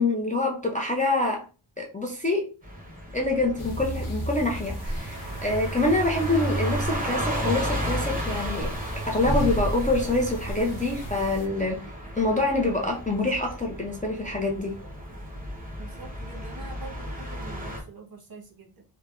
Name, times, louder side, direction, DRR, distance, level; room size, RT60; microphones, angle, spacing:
voice 1, 0.0-1.4 1.8-2.5 3.1-8.7 9.1-11.8 12.2-14.7, left 2 dB, 15° left, 0.4 m, -26 dB
sound 1, 2.6-17.8, equal, 15° right, 0.9 m, -35 dB
sound 2, 3.6-11.5, right 1 dB, 40° left, 0.8 m, -32 dB
voice 2, 15.8-18.8, right 4 dB, 45° right, 1.0 m, -45 dB
3.2 x 2.1 x 2.4 m
wide cardioid pair, 80°, 50 cm